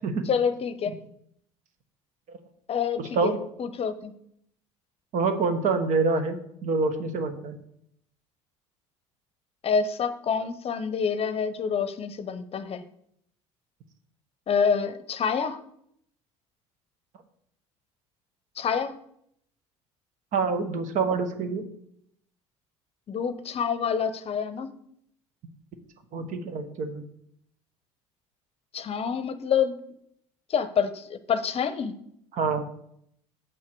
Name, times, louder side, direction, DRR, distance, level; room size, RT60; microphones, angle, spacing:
voice 1, 0.3-0.9 2.7-3.3 3.6-4.1 9.6-12.8 14.5-15.6 18.6-19.0 23.1-24.7 28.7-29.8 30.5-31.9, left 6 dB, 40° left, 12 dB, 0.7 m, -27 dB
voice 2, 3.0-3.4 5.1-7.6 20.3-21.6 26.1-27.0 32.3-32.7, right 4 dB, 55° right, 9 dB, 1.1 m, -26 dB
7.5 x 5.7 x 4.6 m, 0.72 s
hypercardioid pair, 65°, 15 cm